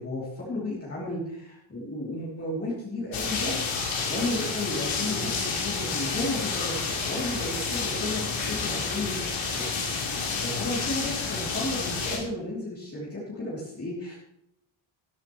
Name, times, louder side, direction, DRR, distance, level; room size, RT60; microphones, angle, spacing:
voice 1, 0.0-9.7 10.4-14.2, left 1 dB, 30° left, -6 dB, 3.0 m, -33 dB
sound 1, 3.1-12.2, left 4 dB, 75° left, 3.9 m, -30 dB
13.5 x 13.5 x 3.1 m, 0.79 s
wide cardioid pair, 175°, 48 cm